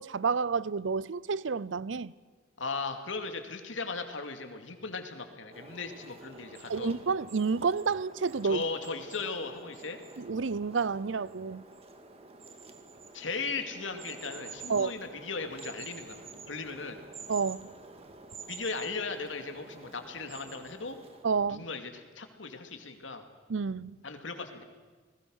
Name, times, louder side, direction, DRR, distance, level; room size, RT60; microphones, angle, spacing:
voice 1, 0.0-2.1 6.7-8.6 10.2-11.6 14.7-14.9 17.3-17.7 21.2-21.7 23.5-23.9, right 5 dB, 75° right, 0.6 m, -29 dB
voice 2, 2.6-7.0 8.4-10.0 13.1-16.2 16.5-17.0 18.5-21.0 21.5-23.3 24.0-24.6, left 4 dB, 90° left, 2.5 m, -37 dB
sound 1, 5.5-21.2, right 3 dB, 35° right, 2.1 m, -49 dB
29.0 x 20.5 x 6.5 m
head